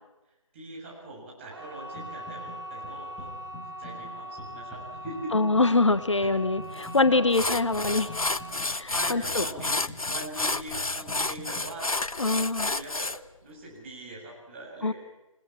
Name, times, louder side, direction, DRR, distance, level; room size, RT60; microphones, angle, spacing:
voice 1, 0.5-3.3 3.8-5.5 6.2-6.4 7.1-7.4 8.6-12.0 12.3-13.1 13.4-14.9, right 2 dB, 20° right, -3 dB, 7.7 m, -42 dB
sound 1, 1.4-12.3 12.6-13.1 13.5-13.6, equal, 45° right, 4.3 m, -42 dB
sound 2, 2.0-2.6 2.8-11.7, left 1 dB, 5° left, 3.3 m, -46 dB
voice 2, 5.3-8.3 8.7-9.4 12.2-12.7 14.8-14.9, left 3 dB, 60° left, 12 dB, 1.4 m, -24 dB
sound 3, 6.8-6.9 7.3-13.2, left 2 dB, 85° left, 0.9 m, -30 dB
28.5 x 19.0 x 7.4 m, 0.97 s
figure-of-eight pair, 160°, 18 cm